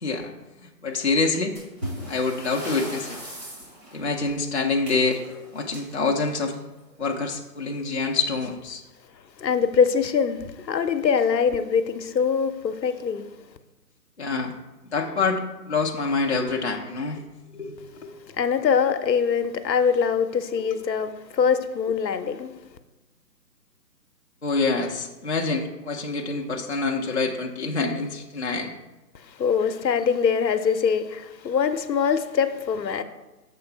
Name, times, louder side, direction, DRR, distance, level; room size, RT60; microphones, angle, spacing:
voice 1, 0.0-0.3 0.6-1.6 2.1-3.2 3.9-5.2 5.5-6.5 7.0-8.8 14.2-14.5 14.9-17.2 17.5-18.1 20.7-20.8 24.4-28.7, left 3 dB, 45° left, 0.5 m, -26 dB
sound 1, 1.6-6.9 8.2-8.4 8.7-8.8 9.4-9.5 10.2-10.5, right 1 dB, 40° right, 2.3 m, -39 dB
voice 2, 9.4-13.3 18.4-22.5 29.4-33.0, left 6 dB, 80° left, 0.7 m, -23 dB
6.8 x 3.7 x 5.5 m
hypercardioid pair, 175°, 50 cm